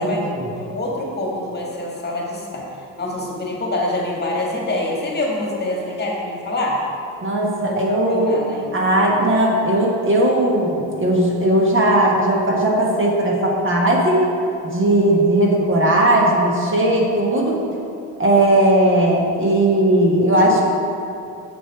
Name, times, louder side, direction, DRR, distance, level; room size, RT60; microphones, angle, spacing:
voice 1, 0.0-2.7 3.0-6.8 7.7-7.8 8.1-8.8, left 1 dB, 25° left, -2 dB, 1.8 m, -25 dB
voice 2, 7.2-8.4 8.7-14.3 14.7-17.6 18.2-20.7, right 1 dB, 35° right, -2 dB, 1.3 m, -17 dB
6.5 x 6.2 x 4.6 m, 2.8 s
supercardioid pair, 85°, 38 cm